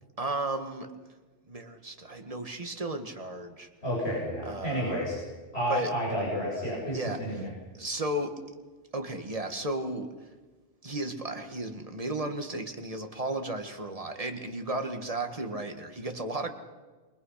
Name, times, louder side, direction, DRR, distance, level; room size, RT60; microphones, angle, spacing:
voice 1, 0.2-0.9 1.5-3.7 4.4-5.0 5.7-5.9 6.9-7.4 7.8-8.4 8.9-10.3 10.8-16.5, right 2 dB, 30° right, 5 dB, 2.1 m, -34 dB
voice 2, 3.8-5.2 5.5-7.5, equal, 60° left, -5 dB, 7.7 m, -30 dB
28.0 x 24.5 x 5.9 m, 1.3 s
omnidirectional pair, 1.2 m